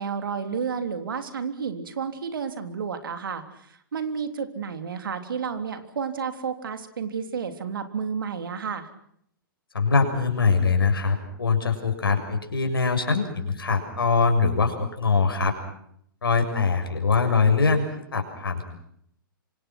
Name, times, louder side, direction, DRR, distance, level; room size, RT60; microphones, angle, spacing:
voice 1, 0.0-8.9, right 6 dB, 65° right, 7 dB, 3.3 m, -31 dB
voice 2, 9.7-15.5 16.2-17.8 18.1-18.6, left 4 dB, 75° left, 5 dB, 6.9 m, -22 dB
27.5 x 25.5 x 6.1 m, 0.70 s
figure-of-eight pair, 120°, 12 cm